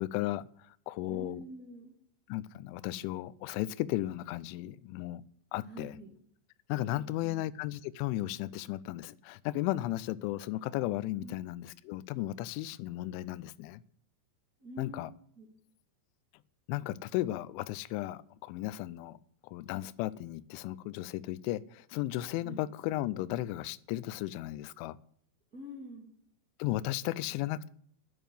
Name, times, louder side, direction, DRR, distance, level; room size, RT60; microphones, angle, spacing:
voice 1, 0.0-1.4 2.3-5.2 5.5-6.0 6.7-13.8 14.8-15.1 16.7-19.2 19.4-25.0 26.6-27.7, left 15 dB, 80° left, 16 dB, 2.9 m, -35 dB
voice 2, 1.1-1.9 5.6-6.1 6.9-7.4 11.2-11.3 14.6-15.0 15.3-15.5 22.4-22.6 25.5-26.1, right 1 dB, 50° right, -3 dB, 1.1 m, -46 dB
11.0 x 6.8 x 9.3 m, 0.64 s
omnidirectional pair, 5.7 m